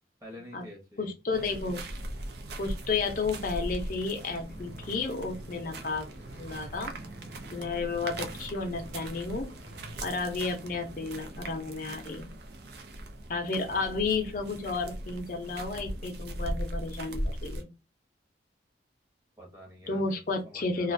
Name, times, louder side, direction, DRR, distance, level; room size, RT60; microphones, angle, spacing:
voice 1, 0.2-1.1 19.4-20.9, left 1 dB, 20° right, -1 dB, 0.9 m, -48 dB
voice 2, 1.0-1.8 2.6-6.1 6.4-7.0 7.5-9.5 10.0-12.3 13.3-17.7 19.9-20.9, left 4 dB, 50° left, 3 dB, 0.5 m, -32 dB
sound 1, 1.3-17.6, right 1 dB, 65° right, 0.5 m, -39 dB
sound 2, 4.5-10.1, equal, 90° left, 0.7 m, -50 dB
2.4 x 2.2 x 2.5 m, 0.26 s
head